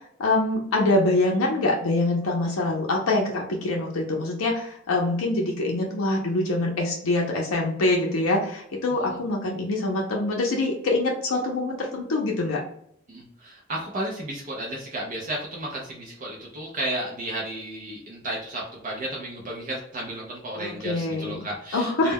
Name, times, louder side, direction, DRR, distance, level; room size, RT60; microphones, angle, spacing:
voice 1, 0.2-12.6 20.6-21.4 21.7-22.1, left 2 dB, 80° left, -1 dB, 0.5 m, -24 dB
voice 2, 13.1-22.1, right 1 dB, 40° right, -2 dB, 0.5 m, -33 dB
2.2 x 2.1 x 3.4 m, 0.69 s
head